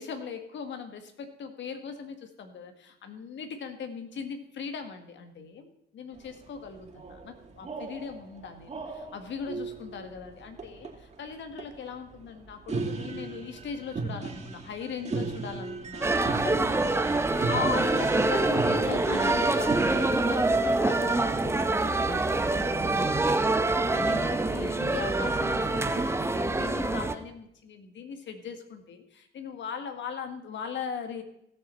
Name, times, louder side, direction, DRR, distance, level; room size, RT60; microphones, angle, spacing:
voice 1, 0.0-31.2, left 6 dB, 70° left, 7 dB, 1.7 m, -39 dB
sound 1, 6.1-20.1, right 3 dB, 35° right, 2.6 m, -38 dB
sound 2, 16.0-27.1, right 2 dB, 15° right, 0.8 m, -25 dB
16.0 x 7.2 x 4.3 m, 0.75 s
cardioid pair, 90°, 20 cm